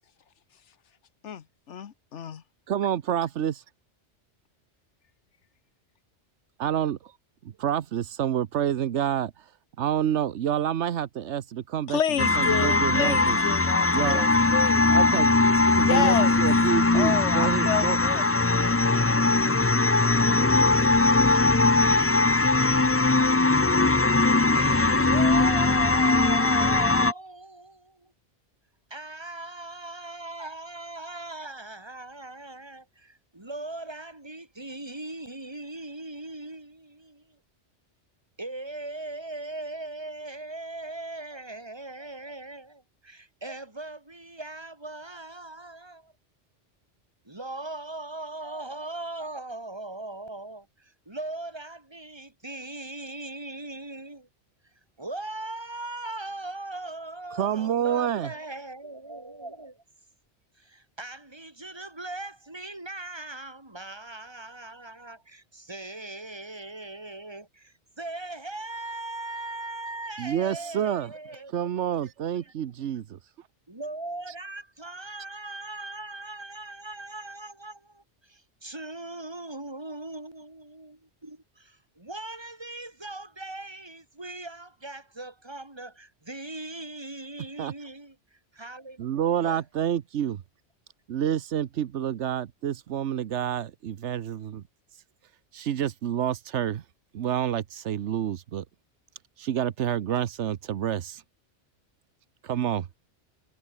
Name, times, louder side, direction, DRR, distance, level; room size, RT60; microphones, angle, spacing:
voice 1, 1.2-2.4 11.9-15.0 15.8-16.5 16.9-18.2, left 8 dB, 75° left, 1.3 m, -30 dB
voice 2, 2.7-3.6 6.6-7.1 7.6-9.3 9.8-13.4 13.9-18.0 57.4-58.3 70.2-73.2 87.6-87.7 89.0-90.4 91.1-94.6 95.5-96.8 97.1-98.6 99.4-101.2 102.4-102.9, right 10 dB, 75° right, 1.1 m, -28 dB
sound 1, 12.2-27.1, left 2 dB, 15° left, 0.5 m, -21 dB
voice 3, 21.0-22.5 24.5-28.1 28.9-37.4 38.4-46.1 47.3-54.3 55.0-59.8 60.6-72.0 72.4-72.5 73.7-89.6, right 2 dB, 20° right, 3.5 m, -39 dB
omnidirectional pair, 1.2 m